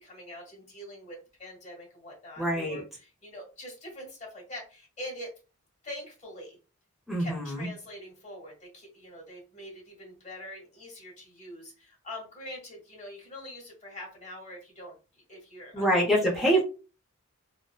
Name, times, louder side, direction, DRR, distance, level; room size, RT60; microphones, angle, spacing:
voice 1, 0.0-5.3 5.8-6.6 7.2-16.2, left 1 dB, 30° left, -1 dB, 1.1 m, -44 dB
voice 2, 2.4-2.8 7.1-7.7 15.7-16.6, right 1 dB, ahead, -5 dB, 0.7 m, -25 dB
2.5 x 2.1 x 2.3 m, 0.33 s
head